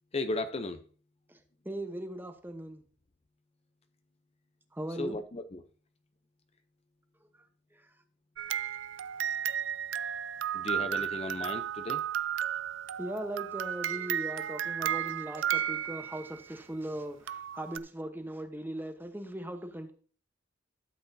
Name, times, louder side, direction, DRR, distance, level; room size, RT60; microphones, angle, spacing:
voice 1, 0.1-0.8 5.0-5.6 10.5-12.0, left 2 dB, 35° left, 0.6 m, -35 dB
voice 2, 1.3-2.8 4.7-5.2 7.3-7.9 13.0-19.9, right 1 dB, 10° right, 1.0 m, -39 dB
sound 1, 8.4-16.4 17.3-17.8, right 10 dB, 90° right, 0.4 m, -33 dB
12.5 x 7.8 x 2.7 m
head